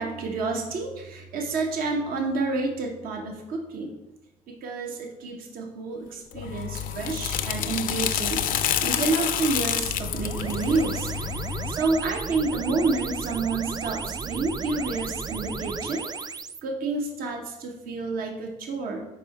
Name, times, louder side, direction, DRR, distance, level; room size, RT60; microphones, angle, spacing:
voice 1, 0.0-4.0 4.5-8.5 8.8-11.1 11.7-16.1 16.6-19.0, right 3 dB, 75° right, 2 dB, 0.9 m, -29 dB
sound 1, 6.3-11.8, left 9 dB, 70° left, 0.5 m, -28 dB
sound 2, 9.8-16.6, right 5 dB, 25° right, 0.3 m, -34 dB
5.3 x 4.5 x 4.1 m, 0.99 s
supercardioid pair, 55°, 15 cm